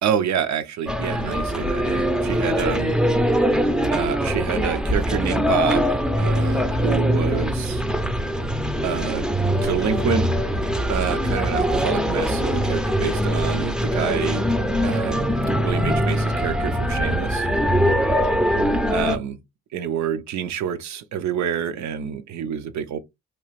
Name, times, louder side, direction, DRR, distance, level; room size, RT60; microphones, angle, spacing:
voice 1, 0.0-3.0 3.9-7.8 8.8-10.3 10.9-14.4 14.8-15.3 15.6-17.5 18.9-19.4 19.7-23.0, right 8 dB, 65° right, 0.6 m, -27 dB
sound 1, 0.9-19.2, equal, ahead, 0.5 m, -22 dB
3.0 x 2.3 x 3.1 m
cardioid pair, 90°, 30 cm